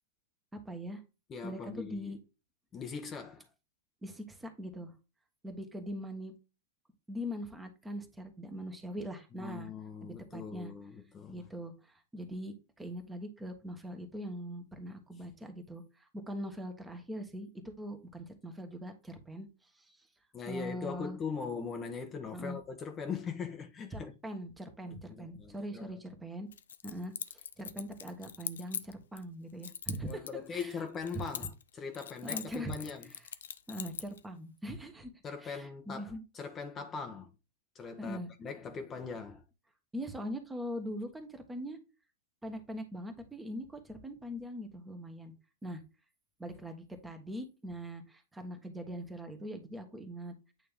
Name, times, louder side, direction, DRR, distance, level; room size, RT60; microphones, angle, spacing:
voice 1, 0.6-1.0 1.4-2.2 4.0-4.9 5.4-6.3 7.1-9.7 10.0-10.7 11.3-20.1 20.4-21.2 22.3-22.6 23.9-26.5 26.8-30.2 30.5-30.8 31.1-31.2 32.2-33.2 33.7-36.2 38.0-38.3 39.9-41.8 42.4-45.3 45.6-45.8 46.4-50.3, equal, 10° right, 1.4 m, -42 dB
voice 2, 1.3-2.1 2.7-3.4 9.3-11.5 20.3-24.1 24.9-26.0 30.1-33.1 35.2-37.3 37.7-39.4, left 5 dB, 25° left, 1.0 m, -41 dB
Keys jangling, 26.5-29.2 29.6-31.7 31.9-34.2, left 8 dB, 80° left, 0.5 m, -42 dB
8.8 x 3.3 x 3.6 m
hypercardioid pair, 110°, 0 cm